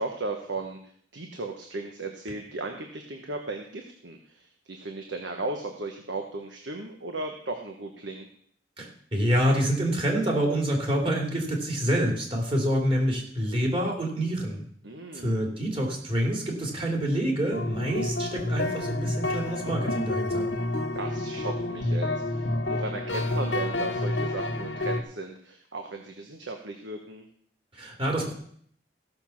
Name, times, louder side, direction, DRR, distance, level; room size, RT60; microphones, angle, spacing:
voice 1, 0.0-8.3 14.8-15.4 20.9-27.3, right 2 dB, 90° right, 4 dB, 1.3 m, -36 dB
voice 2, 8.8-14.7 15.1-20.5 27.7-28.3, equal, 30° right, 0 dB, 3.1 m, -27 dB
sound 1, 17.5-25.0, left 2 dB, 90° left, 1.4 m, -29 dB
15.5 x 6.9 x 5.9 m, 0.62 s
head